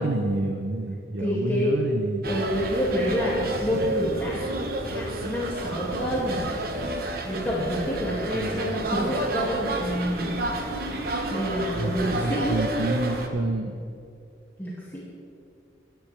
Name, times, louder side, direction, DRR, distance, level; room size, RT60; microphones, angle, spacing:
voice 1, 0.0-2.3 8.1-8.7 11.8-12.0 12.2-13.8, right 2 dB, 70° right, 5 dB, 0.7 m, -29 dB
voice 2, 1.2-1.8 2.3-4.5 4.8-6.5 7.3-10.3 11.3-12.6 14.6-15.0, equal, 10° left, -8 dB, 2.1 m, -28 dB
sound 1, 2.2-13.3, right 2 dB, 50° right, 1.1 m, -30 dB
21.0 x 10.5 x 3.4 m, 2.5 s
head